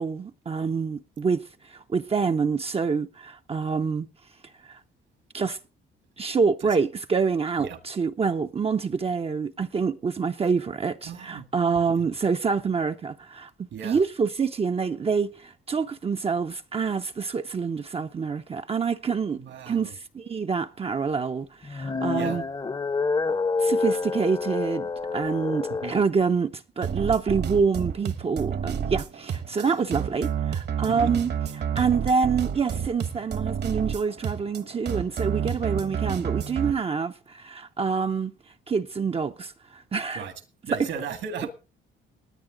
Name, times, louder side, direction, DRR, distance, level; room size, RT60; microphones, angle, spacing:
voice 1, 0.0-4.1 4.6-4.8 5.3-5.6 6.2-13.5 13.8-22.4 23.6-31.3 31.7-38.3 38.7-40.2 40.7-40.9, right 5 dB, 30° right, 0.6 m, -26 dB
voice 2, 11.0-11.5 12.0-12.1 13.7-14.0 19.4-19.9 22.1-22.4 25.8-25.9 27.5-27.6 29.6-29.7 30.9-31.1 40.1-40.3 40.7-41.5, right 7 dB, 75° right, 2.0 m, -36 dB
sound 1, 21.6-26.0, left 4 dB, 20° left, 0.8 m, -27 dB
sound 2, 26.8-36.7, right 8 dB, 55° right, 1.2 m, -30 dB
19.0 x 9.4 x 3.8 m
cardioid pair, 90°, 20 cm